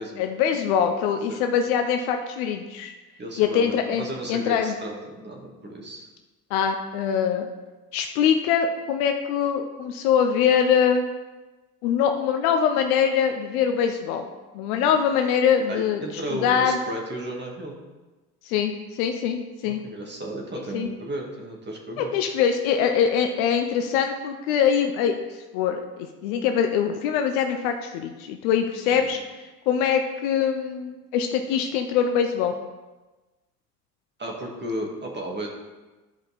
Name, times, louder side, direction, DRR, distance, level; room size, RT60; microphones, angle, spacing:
voice 1, 0.2-2.9 3.4-4.8 6.5-7.5 7.9-11.0 11.8-14.3 14.5-16.8 18.4-19.8 20.7-20.9 22.0-25.8 26.2-29.2 29.7-32.5, left 7 dB, 60° left, 6 dB, 0.8 m, -23 dB
voice 2, 3.2-6.1 14.9-15.0 15.7-17.8 19.6-22.2 28.9-29.1 34.2-35.5, right 1 dB, 20° right, -1 dB, 2.1 m, -34 dB
12.0 x 5.1 x 4.2 m, 1.2 s
figure-of-eight pair, 65°, 49 cm